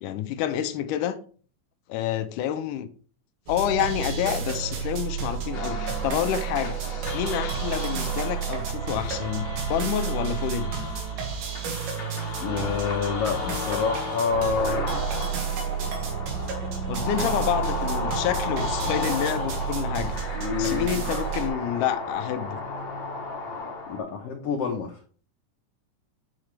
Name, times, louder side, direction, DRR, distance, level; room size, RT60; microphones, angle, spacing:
voice 1, 0.0-1.2 1.9-2.9 3.5-6.8 7.1-10.7 16.9-20.1 20.6-22.6, left 10 dB, 85° left, 2.2 m, -28 dB
sound 1, 3.5-21.5, right 6 dB, 85° right, 3.2 m, -31 dB
sound 2, 5.5-24.0, left 3 dB, 50° left, 1.4 m, -34 dB
Wind instrument woodwind instrument, 7.6-11.8, left 1 dB, 60° right, 1.7 m, -46 dB
voice 2, 12.4-14.9 20.3-21.1 23.9-25.0, left 5 dB, 65° left, 1.6 m, -28 dB
8.9 x 4.8 x 3.2 m
omnidirectional pair, 3.7 m